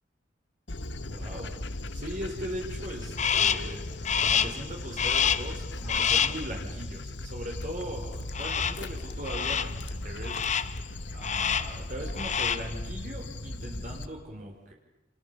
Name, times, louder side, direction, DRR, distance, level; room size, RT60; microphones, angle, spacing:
Dog, 0.7-14.1, left 1 dB, 65° left, 1.5 m, -38 dB
voice 1, 1.1-3.9 4.2-14.7, equal, 40° right, 1 dB, 4.8 m, -39 dB
Crow, 3.2-3.7 4.1-4.6 5.0-5.6 5.9-6.5 8.4-8.9 9.3-9.8 10.2-10.8 11.2-11.8 12.1-12.7, left 8 dB, 35° left, 0.9 m, -27 dB
29.5 x 29.0 x 7.0 m, 0.92 s
head